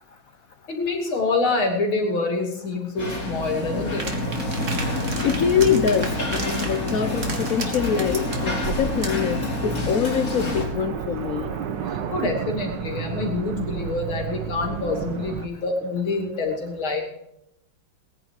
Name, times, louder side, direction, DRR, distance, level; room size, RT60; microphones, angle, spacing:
voice 1, 0.7-4.1 12.1-17.0, left 3 dB, 80° left, 3 dB, 3.5 m, -26 dB
sound 1, 3.0-10.7, left 1 dB, 35° left, 3.9 m, -27 dB
sound 2, 4.0-9.3, right 3 dB, 35° right, 2.4 m, -34 dB
voice 2, 5.2-11.5, left 7 dB, 60° left, 9 dB, 0.9 m, -24 dB
sound 3, 10.3-15.5, right 8 dB, 65° right, 1.6 m, -31 dB
19.5 x 10.0 x 4.9 m, 0.82 s
omnidirectional pair, 2.2 m